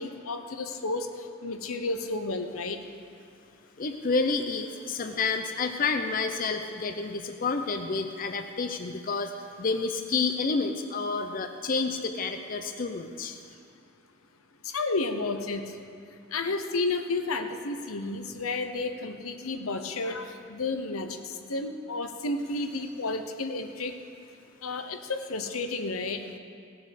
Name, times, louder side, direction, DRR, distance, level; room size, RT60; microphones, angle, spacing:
voice 1, 0.0-2.8 14.6-15.6 16.3-23.9 24.6-26.2, left 3 dB, 85° left, 7 dB, 0.9 m, -32 dB
voice 2, 3.8-9.3 9.6-13.4, left 4 dB, 40° left, 6 dB, 0.6 m, -29 dB
17.5 x 7.1 x 6.5 m, 2.4 s
head